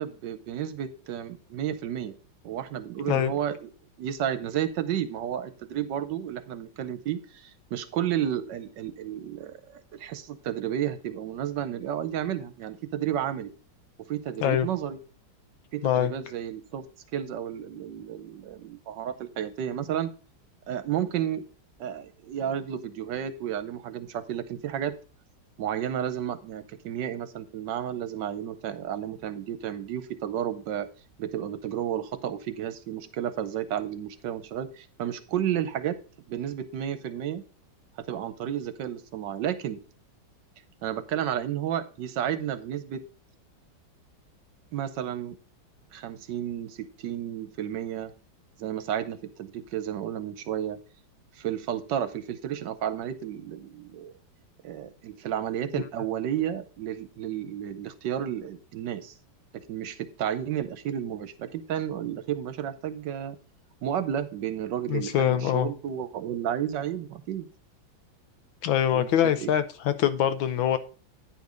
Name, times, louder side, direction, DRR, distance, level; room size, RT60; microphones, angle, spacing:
voice 1, 0.0-2.2 2.4-3.7 4.0-13.5 14.1-15.0 15.7-16.8 17.1-20.1 20.7-21.4 21.8-24.9 25.6-30.9 31.2-36.0 36.3-37.4 38.0-39.8 40.8-43.0 44.7-45.4 45.9-48.1 48.6-50.8 51.4-54.1 54.6-59.1 59.5-63.4 63.8-67.5 68.9-69.5, right 10 dB, 70° right, 1.3 m, -32 dB
voice 2, 64.9-65.7 68.6-70.8, left 10 dB, 80° left, 1.5 m, -24 dB
9.6 x 5.1 x 5.1 m
omnidirectional pair, 2.2 m